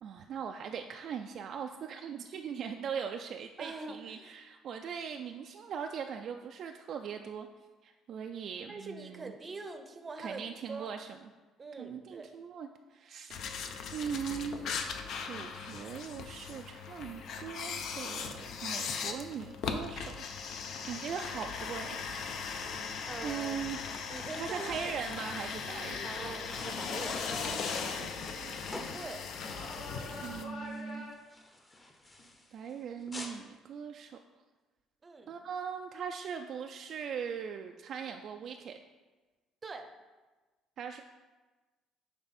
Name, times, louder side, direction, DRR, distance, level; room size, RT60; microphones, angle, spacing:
voice 1, 0.0-7.5 7.8-9.3 10.2-11.2 11.8-14.8 15.3-18.3 18.6-20.2 20.9-22.6 23.2-23.8 24.4-26.1 27.8-28.6 30.2-31.1 32.5-34.2 35.3-38.8 40.8-41.0, right 7 dB, 50° right, 5 dB, 0.3 m, -40 dB
voice 2, 3.6-4.3 8.7-10.9 11.6-12.4 23.0-23.6 24.1-24.9 26.0-27.4 28.9-29.3 35.0-35.4 39.6-39.9, right 3 dB, 25° right, 6 dB, 0.7 m, -43 dB
sound 1, 13.3-30.4, left 5 dB, 60° left, 0.6 m, -38 dB
sound 2, 25.1-33.4, left 1 dB, 20° left, 0.9 m, -50 dB
sound 3, 25.6-28.4 29.4-31.1, left 1 dB, 85° left, 1.6 m, -47 dB
9.4 x 3.4 x 4.1 m, 1.2 s
cardioid pair, 125°, 0 cm